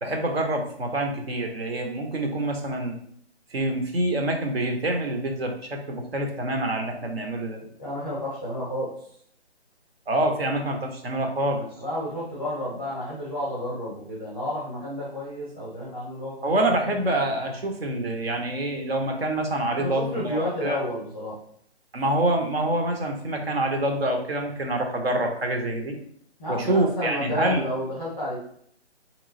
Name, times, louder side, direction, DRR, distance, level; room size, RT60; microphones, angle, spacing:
voice 1, 0.0-2.9 3.5-7.6 10.1-11.6 16.4-20.8 21.9-25.9 26.5-27.6, right 1 dB, 65° right, 3 dB, 0.9 m, -26 dB
voice 2, 7.6-8.9 11.5-16.6 19.7-21.4 26.4-28.4, left 1 dB, 5° left, -9 dB, 0.7 m, -31 dB
3.7 x 3.0 x 2.6 m, 0.65 s
hypercardioid pair, 165°, 34 cm